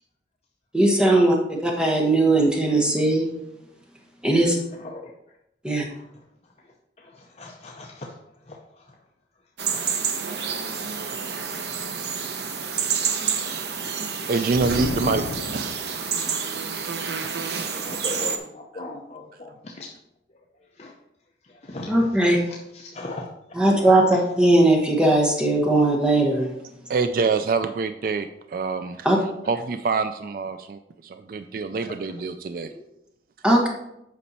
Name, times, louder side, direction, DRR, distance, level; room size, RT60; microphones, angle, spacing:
voice 1, 0.7-3.3 4.2-4.6 5.6-5.8 21.9-22.4 23.5-26.5 29.0-29.2 33.4-33.7, right 1 dB, 5° right, -1 dB, 1.1 m, -19 dB
voice 2, 4.8-5.1 5.8-6.1 6.6-8.1 8.4-9.0 9.7-9.9 10.5-12.8 13.1-14.4 17.2-19.9 20.6-20.9 21.4-23.3 23.8-23.9 31.9-32.1 32.6-32.9, left 2 dB, 35° left, -2 dB, 0.7 m, -41 dB
sound 1, 9.6-18.4, right 6 dB, 65° right, 0.8 m, -29 dB
voice 3, 14.3-15.2 15.5-15.7 26.9-29.1 29.5-32.7, right 4 dB, 50° right, 9 dB, 0.3 m, -26 dB
sound 2, 14.5-16.1, left 3 dB, 85° left, 0.5 m, -32 dB
8.3 x 5.4 x 4.2 m, 0.84 s
head